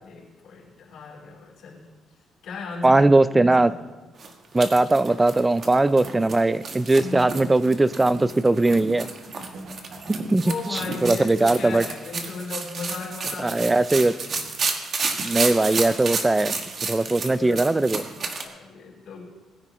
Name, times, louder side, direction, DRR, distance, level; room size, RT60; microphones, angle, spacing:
voice 1, 0.0-3.8 7.0-7.3 10.4-14.3 17.0-19.3, left 4 dB, 70° left, -6 dB, 5.0 m, -37 dB
voice 2, 2.8-3.7 4.5-9.1 10.1-10.5 11.0-11.8 13.4-14.1 15.2-16.5 16.8-18.0, right 2 dB, 15° right, 16 dB, 0.4 m, -20 dB
sound 1, 4.2-18.4, right 4 dB, 45° right, 1.4 m, -31 dB
Gurgling / Toilet flush, 5.8-10.7 11.5-11.6, right 2 dB, 80° right, 2.4 m, -47 dB
20.5 x 9.9 x 3.1 m, 1.3 s
cardioid pair, 110°, 0 cm